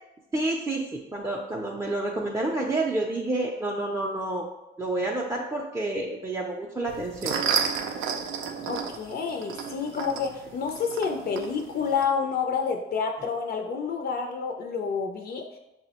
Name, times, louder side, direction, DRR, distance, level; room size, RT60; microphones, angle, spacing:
voice 1, 0.3-4.5 4.8-7.4, right 2 dB, 15° right, -3 dB, 0.4 m, -29 dB
sound 1, 6.9-12.0, right 7 dB, 85° right, 0.4 m, -32 dB
voice 2, 8.7-15.6, left 6 dB, 50° left, 3 dB, 0.4 m, -29 dB
5.9 x 2.0 x 2.8 m, 0.95 s
cardioid pair, 90°, 20 cm